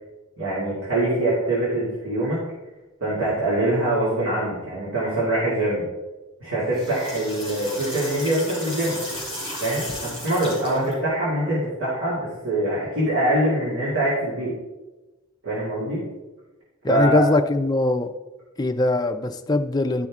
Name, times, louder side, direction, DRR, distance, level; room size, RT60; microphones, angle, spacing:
voice 1, 0.4-2.4 3.0-5.8 6.4-9.0 9.6-14.5 15.4-16.0 16.9-17.3, right 1 dB, 70° right, -9 dB, 2.6 m, -24 dB
sound 1, 6.6-10.9, left 1 dB, 25° right, 3.2 m, -34 dB
voice 2, 16.8-18.1 18.6-20.1, left 2 dB, 20° left, 7 dB, 0.4 m, -21 dB
11.5 x 5.7 x 3.6 m, 1.1 s
head